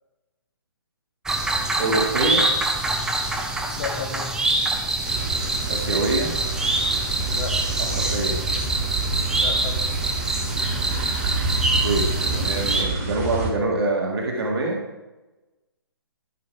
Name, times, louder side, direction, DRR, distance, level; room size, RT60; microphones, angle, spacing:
sound 1, 1.3-12.8, right 2 dB, 5° right, 0.6 m, -25 dB
voice 1, 1.8-2.5 5.7-6.3 7.9-8.4 11.8-14.8, right 2 dB, 75° right, -1 dB, 1.9 m, -25 dB
voice 2, 3.7-4.4 7.3-7.6 9.3-10.0, left 7 dB, 45° left, 3 dB, 1.6 m, -33 dB
sound 2, 5.0-13.5, right 3 dB, 35° right, 1.8 m, -28 dB
13.0 x 5.5 x 4.6 m, 1.1 s
hypercardioid pair, 155°, 13 cm